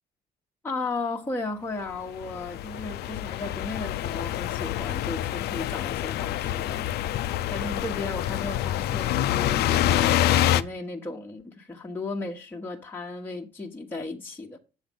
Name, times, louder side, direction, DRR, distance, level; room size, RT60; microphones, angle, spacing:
voice 1, 0.6-7.2 7.5-14.6, left 3 dB, 10° left, 1.1 m, -35 dB
sound 1, 1.9-2.0 2.2-10.6, left 12 dB, 75° left, 0.6 m, -26 dB
7.9 x 7.2 x 5.3 m
cardioid pair, 110°, 17 cm